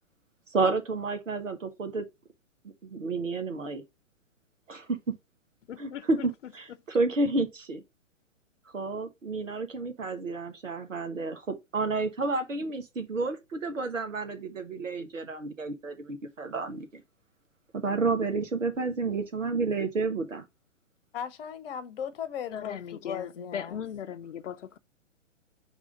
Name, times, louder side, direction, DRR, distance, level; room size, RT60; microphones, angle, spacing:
voice 1, 0.5-2.1 2.8-3.8 5.8-7.8 8.7-17.0 17.7-20.4, right 3 dB, 80° right, 1.4 m, -30 dB
voice 2, 5.7-6.1 22.5-24.8, left 8 dB, 70° left, 0.7 m, -38 dB
voice 3, 21.1-23.8, left 8 dB, 50° left, 1.1 m, -37 dB
4.9 x 3.6 x 5.3 m
hypercardioid pair, 125°, 38 cm